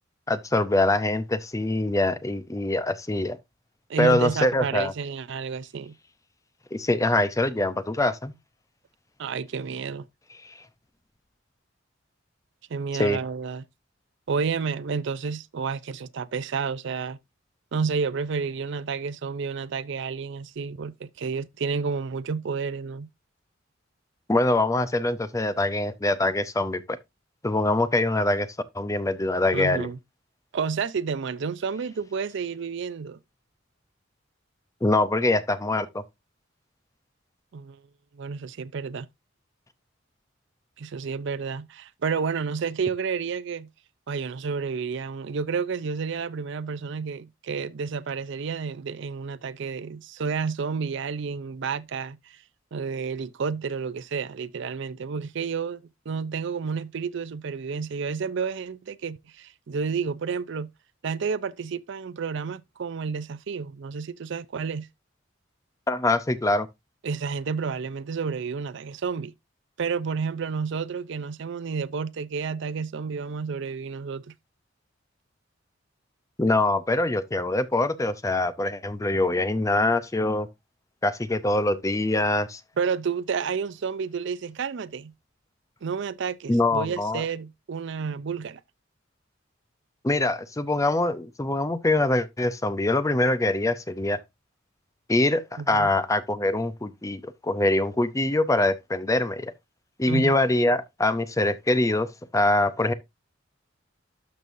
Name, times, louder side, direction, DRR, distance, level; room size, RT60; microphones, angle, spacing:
voice 1, 0.3-3.4 4.0-4.9 6.7-8.3 10.4-10.5 13.0-13.2 24.3-27.0 27.4-28.5 28.7-29.9 34.8-36.0 65.9-66.7 76.4-80.5 81.0-82.6 86.5-87.2 90.0-94.2 95.1-99.5 100.0-102.9, left 2 dB, 15° left, 0.6 m, -24 dB
voice 2, 3.9-5.9 9.2-10.1 12.7-13.6 14.3-17.2 17.7-23.1 29.5-30.0 30.5-33.2 37.5-37.8 38.1-39.1 40.8-43.7 44.1-52.4 52.7-60.7 61.0-64.9 67.0-69.3 69.8-74.3 82.8-85.1 85.8-88.6 95.6-95.9 100.1-100.4, right 5 dB, 65° right, 0.5 m, -30 dB
12.5 x 5.3 x 2.6 m
head